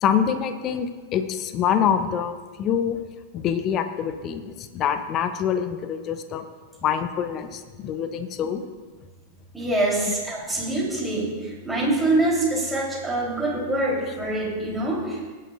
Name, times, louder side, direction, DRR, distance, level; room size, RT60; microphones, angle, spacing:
voice 1, 0.0-3.0 3.3-6.4 6.8-8.6, left 8 dB, 35° left, 10 dB, 0.8 m, -25 dB
voice 2, 9.5-15.3, right 2 dB, 5° right, -4 dB, 3.7 m, -25 dB
18.5 x 9.9 x 2.6 m, 1.4 s
figure-of-eight pair, 90°, 0 cm